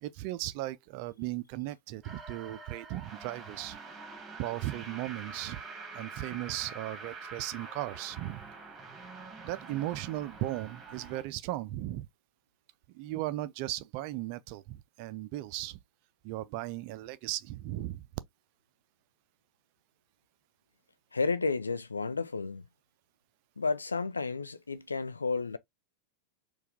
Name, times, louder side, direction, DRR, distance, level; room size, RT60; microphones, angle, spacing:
voice 1, 0.0-3.8 4.4-5.6 5.9-8.4 9.4-12.1 12.9-15.8 16.2-18.0, right 15 dB, 45° right, 0.5 m, -37 dB
sound 1, 2.0-11.2, right 4 dB, 20° right, 1.6 m, -46 dB
voice 2, 21.1-22.6 23.6-25.6, left 4 dB, 75° left, 0.4 m, -32 dB
4.5 x 2.4 x 3.5 m
figure-of-eight pair, 90°, 0 cm